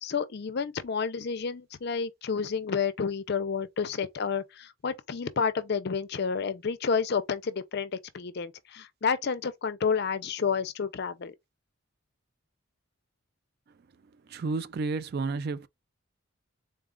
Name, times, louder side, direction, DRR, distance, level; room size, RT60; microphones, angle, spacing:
voice 1, 0.0-11.3, left 6 dB, 50° left, 0.5 m, -30 dB
voice 2, 14.3-15.7, right 3 dB, 50° right, 0.3 m, -31 dB
3.8 x 2.3 x 3.6 m
head